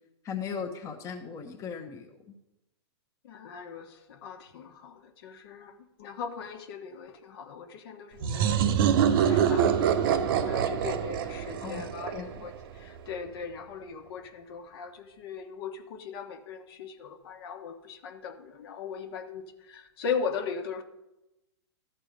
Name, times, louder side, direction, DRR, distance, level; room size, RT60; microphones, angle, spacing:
voice 1, 0.2-2.1 11.6-11.9 12.1-12.4, left 6 dB, 20° left, 1.0 m, -37 dB
voice 2, 3.2-20.8, left 6 dB, 55° left, 1.3 m, -39 dB
sound 1, 8.2-12.8, right 8 dB, 50° right, 0.8 m, -25 dB
13.5 x 4.4 x 6.7 m
hypercardioid pair, 130°, 15 cm